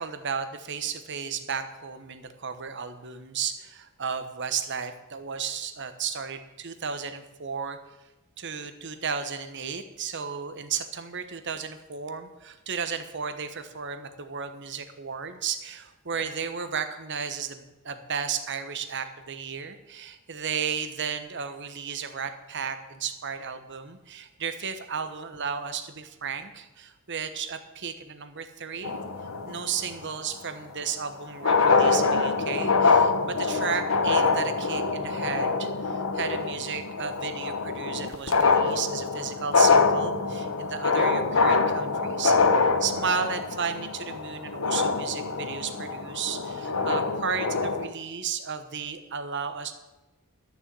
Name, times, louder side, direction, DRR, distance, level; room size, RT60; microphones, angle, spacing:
voice 1, 0.0-7.8 8.4-29.0 29.4-42.3 42.8-49.7, right 6 dB, 55° right, 9 dB, 1.2 m, -34 dB
sound 1, 28.8-29.9 31.1-31.2 31.3-47.9, left 4 dB, 70° left, 1.0 m, -25 dB
12.5 x 7.1 x 7.6 m, 1.0 s
head